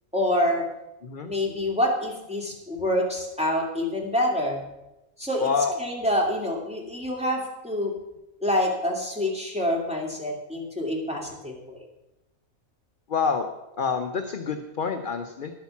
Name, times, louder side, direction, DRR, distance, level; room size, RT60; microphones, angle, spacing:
voice 1, 0.1-0.7 1.2-4.6 5.2-5.5 5.8-8.0 8.4-11.8, left 1 dB, 5° right, -2 dB, 2.6 m, -26 dB
voice 2, 5.4-5.8 13.1-13.5 13.8-15.5, left 5 dB, 45° left, 5 dB, 0.8 m, -27 dB
11.5 x 8.9 x 7.1 m, 0.96 s
omnidirectional pair, 1.5 m